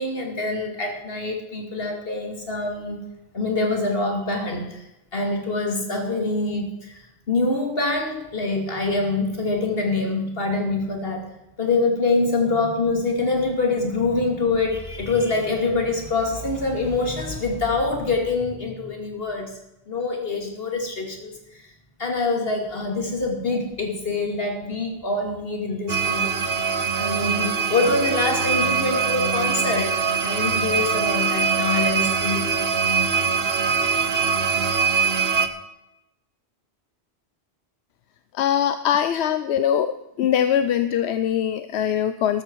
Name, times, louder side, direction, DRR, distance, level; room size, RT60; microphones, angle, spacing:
voice 1, 0.0-3.0 3.3-4.9 5.1-6.9 7.3-11.3 11.6-19.5 19.9-21.6 22.0-26.3 27.0-30.0 30.2-32.5, left 3 dB, 65° left, 2 dB, 2.7 m, -25 dB
sound 1, 25.9-35.5, right 6 dB, 70° right, 1.1 m, -23 dB
voice 2, 38.4-39.9 40.2-42.4, left 9 dB, 85° left, 11 dB, 0.9 m, -22 dB
13.0 x 13.0 x 4.6 m, 0.93 s
omnidirectional pair, 1.1 m